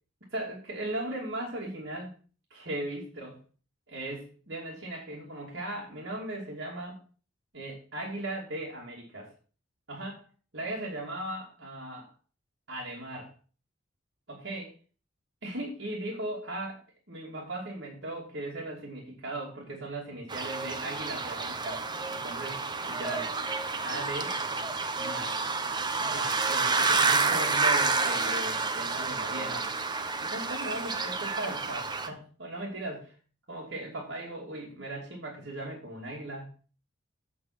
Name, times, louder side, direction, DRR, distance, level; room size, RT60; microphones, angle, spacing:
voice 1, 0.3-2.1 2.5-3.4 3.9-7.0 7.5-9.3 9.9-10.2 10.5-12.1 12.7-13.3 14.3-14.7 15.4-16.8 17.1-21.8 22.1-23.4 23.8-24.4 25.0-25.4 26.0-29.7 30.2-33.1 33.5-36.5, right 1 dB, 60° right, -3 dB, 2.8 m, -38 dB
sound 1, 20.3-32.1, right 4 dB, 20° right, 0.9 m, -29 dB
8.4 x 7.2 x 6.1 m, 0.39 s
head